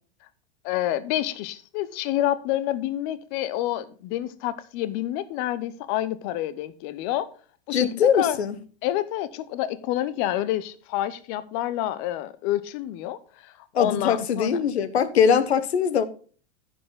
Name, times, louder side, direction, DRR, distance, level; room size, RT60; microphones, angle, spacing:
voice 1, 0.6-7.3 7.7-8.4 8.8-14.6, left 13 dB, 50° left, 1.0 m, -28 dB
voice 2, 7.7-8.5 13.7-16.1, left 7 dB, 80° left, 1.2 m, -21 dB
15.0 x 5.5 x 3.9 m
hypercardioid pair, 105°, 32 cm